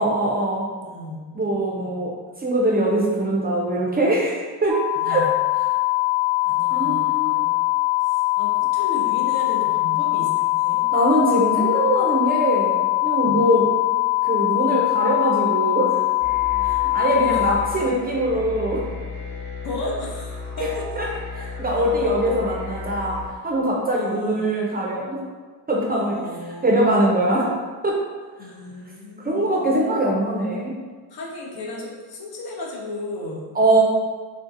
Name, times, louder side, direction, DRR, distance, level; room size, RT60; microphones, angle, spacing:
voice 1, 0.0-0.7 1.3-4.7 5.1-5.3 6.7-7.5 10.9-13.7 14.2-16.0 16.7-18.8 21.0-21.1 21.3-23.2 23.4-25.2 25.7-26.2 26.6-27.5 27.8-28.0 29.2-30.7 33.5-33.8, right 1 dB, 25° right, -3 dB, 0.4 m, -22 dB
voice 2, 0.8-1.2 1.8-2.0 5.0-5.3 6.4-7.5 8.0-10.8 13.1-13.4 17.2-17.4 19.6-20.8 23.9-24.5 25.9-26.8 28.4-29.7 31.1-33.4, left 2 dB, 75° left, -2 dB, 0.7 m, -35 dB
sound 1, 4.7-17.6, left 20 dB, 90° right, 0.6 m, -22 dB
sound 2, 16.2-23.3, left 3 dB, 20° left, 1.1 m, -34 dB
3.4 x 2.6 x 2.5 m, 1.4 s
wide cardioid pair, 170°, 38 cm